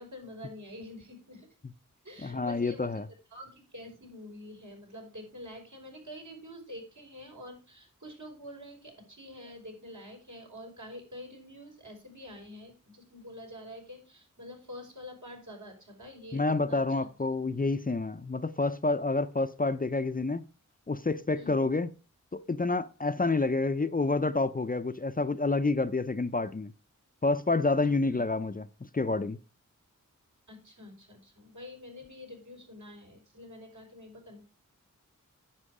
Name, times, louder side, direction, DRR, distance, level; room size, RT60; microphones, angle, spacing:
voice 1, 0.0-1.5 2.0-3.0 3.3-17.0 21.3-21.6 28.1-28.2 30.5-34.5, left 1 dB, 65° right, 5.3 m, -47 dB
voice 2, 2.2-3.0 16.3-20.5 20.9-21.9 22.3-26.7 27.2-28.6 28.9-29.4, left 3 dB, 25° left, 0.6 m, -28 dB
9.9 x 7.5 x 4.9 m
wide cardioid pair, 55°, 32 cm